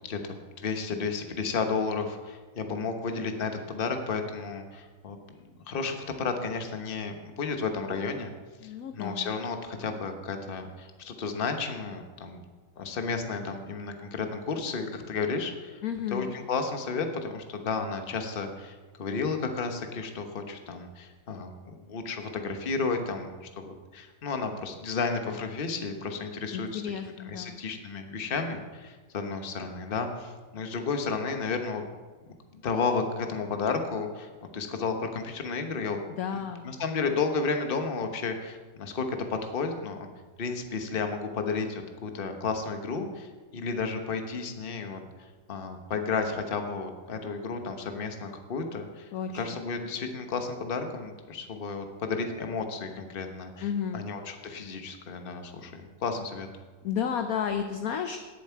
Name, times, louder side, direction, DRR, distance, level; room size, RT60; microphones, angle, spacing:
voice 1, 0.0-8.3 8.6-12.4 12.8-15.8 16.1-26.8 27.3-31.8 32.5-36.0 36.3-40.1 40.4-45.0 45.5-49.1 49.3-53.7 53.9-56.5, left 4 dB, 35° left, 6 dB, 0.9 m, -32 dB
voice 2, 8.6-9.3 15.8-16.4 26.5-27.6 36.2-36.7 49.1-49.6 53.6-54.1 56.8-58.2, left 7 dB, 70° left, 7 dB, 0.9 m, -32 dB
18.0 x 7.4 x 4.6 m, 1.4 s
omnidirectional pair, 2.2 m